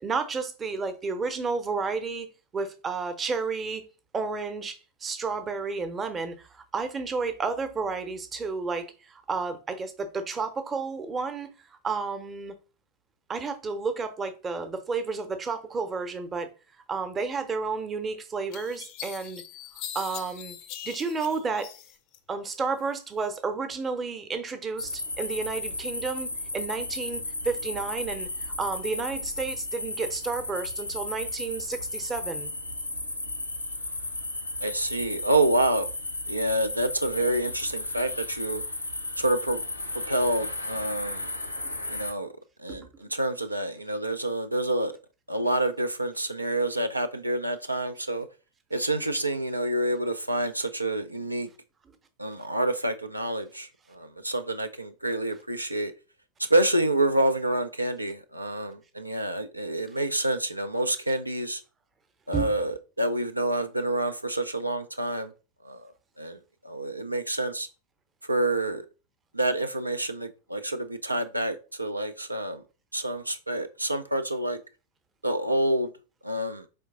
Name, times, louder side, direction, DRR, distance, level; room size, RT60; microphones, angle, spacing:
voice 1, 0.0-3.8 4.1-11.5 11.8-12.5 13.3-16.5 16.9-19.4 19.9-20.6 20.8-21.7 22.3-32.5 42.7-42.8 62.3-62.5, right 4 dB, 20° right, 0.7 m, -31 dB
sound 1, 17.8-17.9 18.5-22.2 22.5-23.3, left 10 dB, 45° left, 0.4 m, -41 dB
sound 2, 24.8-42.1, left 2 dB, 85° left, 0.6 m, -34 dB
voice 2, 34.6-35.9 36.3-38.6 39.2-39.6 39.9-41.3 41.9-42.3 42.6-44.9 45.3-48.3 48.7-51.5 52.2-55.9 56.5-61.6 62.3-65.3 65.6-65.9 66.2-67.7 68.3-68.9 69.3-72.6 72.9-74.6 75.2-75.9 76.2-76.7, right 1 dB, 85° right, 0.4 m, -28 dB
4.4 x 3.3 x 3.7 m
figure-of-eight pair, 90°, 0 cm